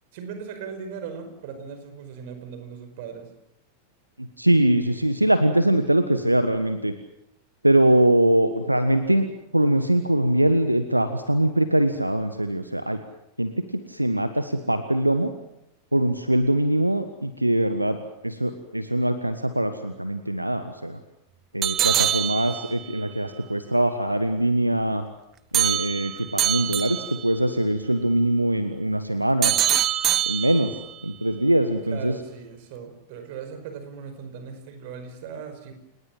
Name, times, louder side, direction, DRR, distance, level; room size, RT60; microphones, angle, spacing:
voice 1, 0.1-3.3 31.8-35.7, right 6 dB, 50° right, 8 dB, 5.2 m, -38 dB
voice 2, 4.2-6.9 7.6-9.3 9.5-13.0 13.4-13.5 13.9-15.3 15.9-18.0 18.2-21.0 21.5-25.0 25.5-29.5 30.3-30.8 31.0-32.1, right 1 dB, 85° right, 10 dB, 1.4 m, -22 dB
sound 1, 21.6-23.0 25.5-27.3 29.4-30.9, right 11 dB, 30° right, 1.0 m, -24 dB
29.5 x 19.5 x 7.5 m, 0.82 s
figure-of-eight pair, 90°, 0 cm